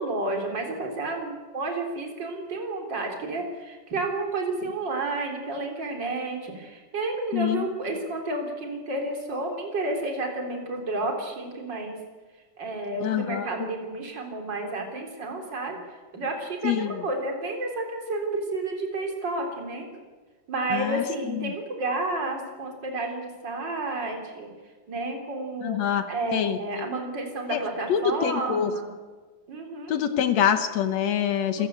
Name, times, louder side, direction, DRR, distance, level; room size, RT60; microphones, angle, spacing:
voice 1, 0.0-12.0 12.6-19.9 20.5-24.5 24.9-28.9 29.5-30.0 31.6-31.7, right 2 dB, 30° right, 2 dB, 4.0 m, -31 dB
voice 2, 7.3-7.7 13.0-13.5 16.6-17.0 20.7-21.5 25.6-26.0 26.3-26.9 27.5-27.6 27.9-28.7 29.9-31.7, left 9 dB, 65° left, 10 dB, 1.8 m, -25 dB
27.0 x 16.5 x 8.1 m, 1.4 s
omnidirectional pair, 4.2 m